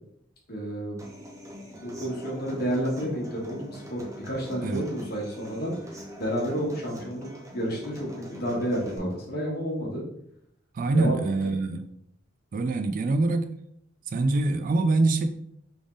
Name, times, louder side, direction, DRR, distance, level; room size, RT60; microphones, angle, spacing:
voice 1, 0.5-1.0 1.8-7.3 7.5-10.0 10.9-11.2 11.4-11.5, equal, 50° left, -2 dB, 1.4 m, -30 dB
Human voice / Acoustic guitar, 1.0-9.0, equal, 15° right, 0.9 m, -43 dB
voice 2, 10.7-11.9 12.5-13.5 14.1-15.2, right 2 dB, 40° right, 6 dB, 0.3 m, -24 dB
3.5 x 3.4 x 3.8 m, 0.74 s
head